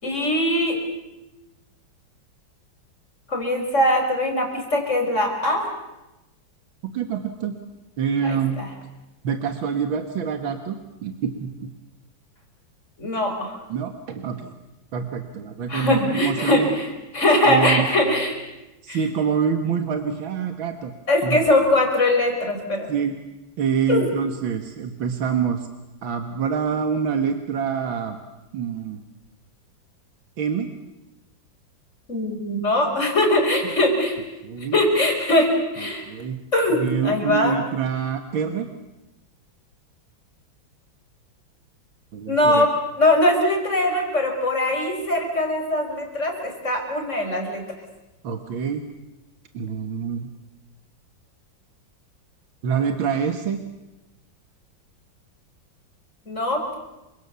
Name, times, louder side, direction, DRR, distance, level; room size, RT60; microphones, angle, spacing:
voice 1, 0.0-0.8 3.3-5.7 8.2-8.7 13.0-13.6 15.7-16.9 17.1-18.4 18.9-19.0 21.1-22.9 23.9-24.1 32.1-34.2 34.7-35.5 35.7-36.0 36.5-37.6 42.3-42.7 43.0-47.6 56.3-56.8, left 1 dB, 35° left, 3 dB, 5.6 m, -21 dB
voice 2, 6.9-7.5 8.0-8.6 9.2-10.8 11.0-11.7 13.7-14.5 14.9-16.7 17.5-17.9 18.8-20.9 21.2-21.4 22.9-23.2 23.6-25.7 26.0-28.2 28.5-29.0 30.4-30.7 33.6-33.7 34.4-34.8 35.8-36.4 36.7-38.7 42.1-42.7 48.2-48.8 49.5-50.3 52.6-53.6, right 7 dB, 90° right, 6 dB, 2.4 m, -26 dB
29.5 x 25.0 x 7.0 m, 0.99 s
omnidirectional pair, 2.1 m